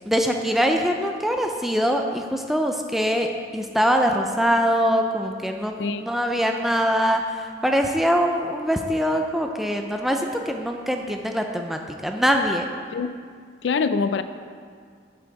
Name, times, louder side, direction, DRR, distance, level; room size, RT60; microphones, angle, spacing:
voice 1, 0.1-3.3 3.5-12.6, equal, ahead, 3 dB, 0.4 m, -23 dB
voice 2, 5.8-6.1 12.9-13.1 13.6-14.2, left 5 dB, 85° left, 11 dB, 0.4 m, -24 dB
7.8 x 7.6 x 4.6 m, 2.1 s
head